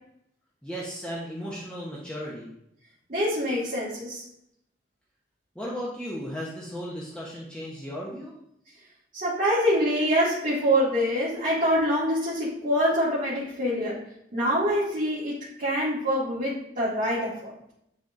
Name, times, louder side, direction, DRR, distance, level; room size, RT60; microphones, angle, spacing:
voice 1, 0.6-2.5 5.5-8.3, equal, 5° left, -6 dB, 1.0 m, -35 dB
voice 2, 3.1-4.2 9.1-14.0 14.3-17.5, equal, 45° right, -9 dB, 2.1 m, -25 dB
10.5 x 4.1 x 2.6 m, 0.76 s
head